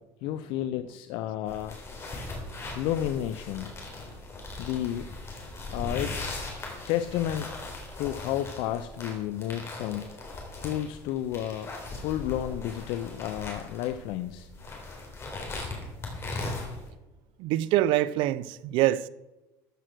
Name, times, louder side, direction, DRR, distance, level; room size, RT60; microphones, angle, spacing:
voice 1, 0.2-1.8 2.7-3.7 4.6-5.1 5.7-6.4 6.9-7.5 8.0-10.2 10.6-14.5, left 12 dB, 70° left, 0.6 m, -31 dB
sound 1, 1.5-16.9, left 2 dB, 30° left, 3.7 m, -39 dB
voice 2, 17.4-19.1, right 14 dB, 70° right, 0.6 m, -25 dB
13.5 x 6.4 x 6.2 m
cardioid pair, 125°, 9 cm